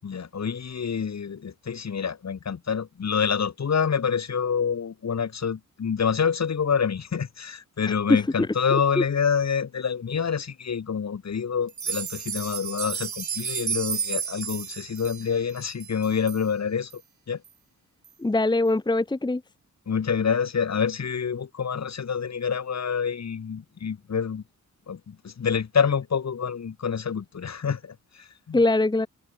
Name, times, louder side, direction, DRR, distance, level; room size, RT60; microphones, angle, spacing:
voice 1, 0.0-17.0 17.3-17.4 19.9-24.4 24.9-28.6, left 6 dB, 55° left, 7.8 m, -27 dB
voice 2, 7.9-8.2 8.7-9.0 18.2-19.4 28.5-29.1, left 2 dB, 15° left, 1.3 m, -22 dB
sound 1, 11.7-16.4 16.9-17.0 17.4-17.5 18.0-18.1, right 7 dB, 65° right, 5.6 m, -32 dB
wide cardioid pair, 165°, 32 cm